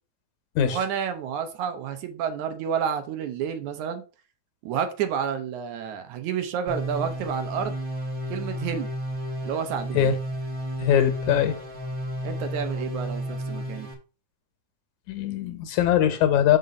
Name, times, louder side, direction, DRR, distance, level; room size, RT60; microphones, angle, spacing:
voice 1, 0.7-4.0 4.6-7.8 8.3-8.9 9.4-10.1 12.2-13.9, right 8 dB, 80° right, 2.3 m, -30 dB
sound 1, 6.7-13.9, equal, 35° right, 2.0 m, -32 dB
voice 2, 10.8-11.6 15.1-16.6, left 9 dB, 75° left, 2.4 m, -21 dB
6.6 x 5.3 x 5.2 m
omnidirectional pair, 3.4 m